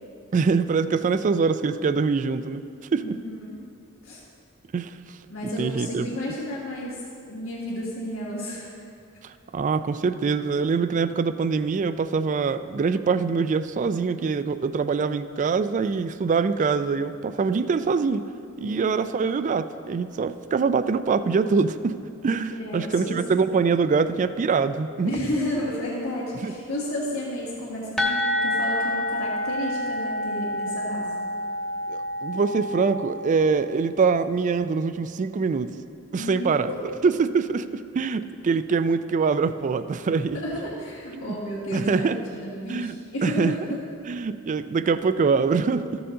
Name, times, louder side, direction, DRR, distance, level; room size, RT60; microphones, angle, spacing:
voice 1, 0.3-2.6 2.9-3.2 4.7-5.0 5.4-6.1 9.2-18.2 18.6-22.0 22.2-25.1 26.4-26.5 31.9-35.7 36.1-36.7 37.0-40.4 41.1-41.4 41.7-42.2 42.7-43.5 44.1-46.0, right 5 dB, 40° right, 12 dB, 0.3 m, -24 dB
voice 2, 2.9-3.6 4.0-4.2 5.3-8.7 18.6-18.9 22.6-23.2 25.0-31.1 36.2-36.9 40.3-43.8, left 1 dB, 85° left, -9 dB, 1.8 m, -32 dB
sound 1, 28.0-33.6, left 1 dB, 5° left, 0.9 m, -28 dB
14.0 x 6.9 x 3.7 m, 2.5 s
head